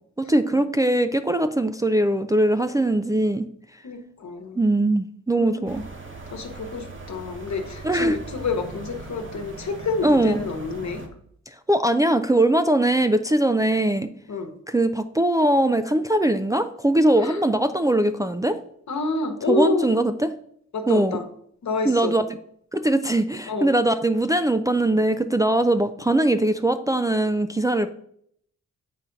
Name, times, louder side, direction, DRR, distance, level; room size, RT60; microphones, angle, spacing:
voice 1, 0.2-3.5 4.6-5.8 7.8-8.2 10.0-10.4 11.5-14.1 14.7-18.6 19.5-20.3 20.9-21.2 21.8-22.2 22.7-27.9, right 1 dB, 10° right, 8 dB, 0.4 m, -21 dB
voice 2, 3.8-4.6 5.4-5.6 6.3-11.0 14.3-14.6 17.2-17.4 18.9-19.9 20.7-21.3 21.6-22.1 23.5-23.7, left 3 dB, 65° left, 5 dB, 1.2 m, -28 dB
sound 1, 5.7-11.1, right 3 dB, 40° right, 1.2 m, -39 dB
7.4 x 2.6 x 5.6 m, 0.66 s
cardioid pair, 55°, 31 cm